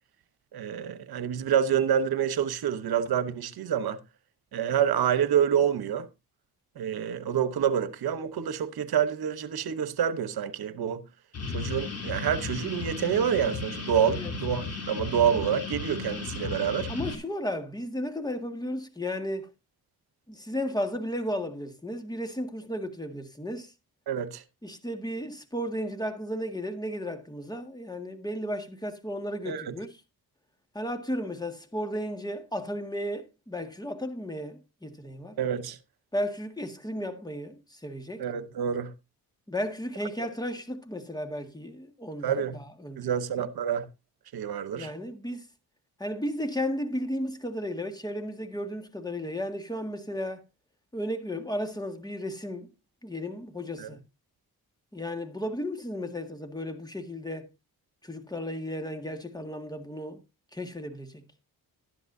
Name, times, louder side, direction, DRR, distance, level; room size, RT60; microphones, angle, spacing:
voice 1, 0.5-4.0 4.5-6.1 6.8-11.0 11.5-16.9 24.1-24.4 29.5-29.7 35.4-35.8 38.2-38.9 42.2-42.6 43.0-43.9 44.3-44.9 53.8-53.9, right 8 dB, 75° right, 1.1 m, -27 dB
sound 1, 11.3-17.2, left 3 dB, 40° left, 3.4 m, -35 dB
voice 2, 16.9-19.5 20.3-23.7 24.6-29.9 30.7-35.4 36.1-38.3 39.5-43.5 44.8-45.5 46.0-50.4 50.9-52.7 53.0-54.0 54.9-57.5 58.0-60.2 60.5-61.2, equal, 10° left, 1.9 m, -34 dB
12.5 x 11.0 x 2.7 m
cardioid pair, 75°, 38 cm